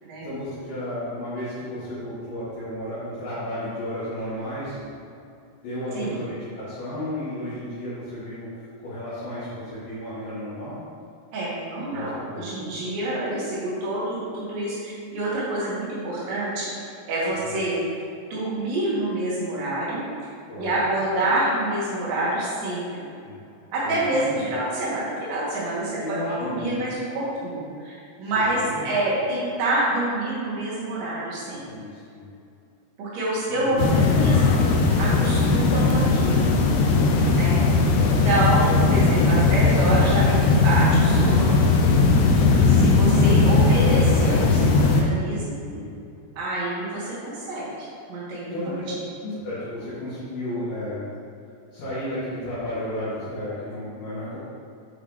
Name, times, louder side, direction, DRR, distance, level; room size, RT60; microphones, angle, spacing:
voice 1, 0.2-4.8 5.6-10.8 11.8-12.8 17.4-17.6 20.5-20.8 23.2-23.3 23.8-24.5 26.0-26.8 28.2-28.3 28.6-28.9 31.6-32.3 33.5-34.0 37.9-38.2 38.8-39.1 39.4-39.9 45.7-45.9 48.5-51.1 51.7-54.4, left 1 dB, 65° left, -13 dB, 3.4 m, -33 dB
voice 2, 11.3-16.7 17.1-17.8 18.3-20.0 20.6-23.1 23.7-31.6 33.0-36.5 37.3-37.6 38.0-45.6 46.4-48.6, right 1 dB, 90° right, -8 dB, 4.2 m, -27 dB
sound 1, 33.8-45.0, left 3 dB, 80° left, 2.7 m, -18 dB
8.8 x 5.8 x 3.3 m, 2.6 s
omnidirectional pair, 4.9 m